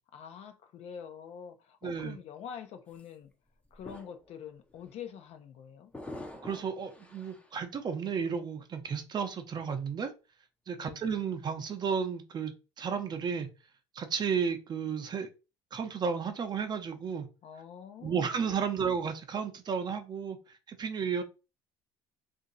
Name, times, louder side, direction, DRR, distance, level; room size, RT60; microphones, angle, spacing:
voice 1, 0.1-3.3 3.7-5.9 10.7-11.0 17.4-18.6, left 8 dB, 55° left, 0.6 m, -46 dB
voice 2, 1.8-2.2 6.4-10.1 10.7-13.5 14.0-15.3 15.7-17.3 18.0-20.4 20.7-21.2, right 6 dB, 35° right, 0.7 m, -33 dB
sound 1, 2.9-3.1 3.6-4.3 4.7-4.9 5.9-7.6, left 1 dB, 10° left, 0.6 m, -46 dB
2.8 x 2.6 x 3.9 m
cardioid pair, 105°, 13 cm